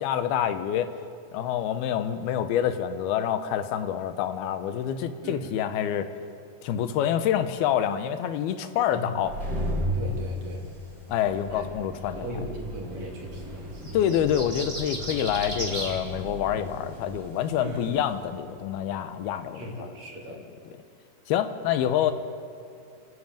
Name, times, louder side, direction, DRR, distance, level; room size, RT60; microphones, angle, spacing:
voice 1, 0.0-0.9 1.3-6.1 6.6-9.3 11.1-12.3 13.9-19.7 21.3-22.1, left 10 dB, 90° left, 10 dB, 2.9 m, -27 dB
voice 2, 5.2-5.5 8.9-9.2 9.9-10.7 11.5-11.6 12.1-13.8 17.6-17.9 19.5-20.4 22.0-22.1, equal, 45° right, -1 dB, 3.9 m, -37 dB
sound 1, 9.1-19.5, equal, 25° right, 4.1 m, -36 dB
sound 2, 13.8-16.0, right 1 dB, 10° right, 3.2 m, -34 dB
29.0 x 11.0 x 9.1 m, 2.4 s
omnidirectional pair, 4.3 m